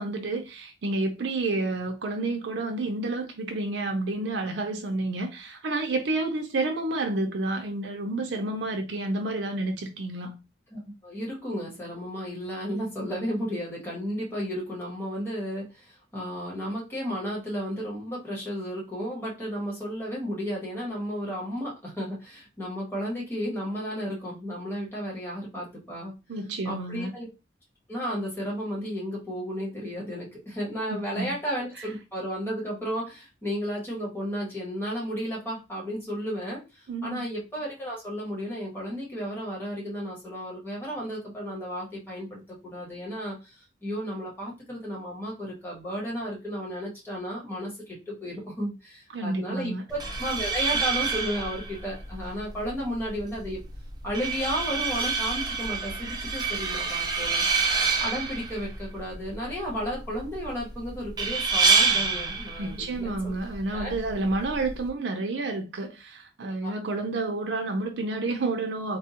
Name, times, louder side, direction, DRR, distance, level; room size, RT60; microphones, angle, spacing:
voice 1, 0.0-10.4 26.3-27.1 30.9-31.3 31.8-31.9 36.9-37.3 49.1-49.8 62.6-69.0, right 2 dB, 85° right, 0.5 m, -30 dB
voice 2, 10.7-26.1 26.6-27.3 27.9-53.6 54.0-57.4 58.0-63.4 63.7-63.9 66.6-66.7, equal, 10° left, 1.3 m, -33 dB
sound 1, 49.9-64.9, right 4 dB, 25° right, 0.4 m, -28 dB
3.5 x 2.3 x 2.8 m
head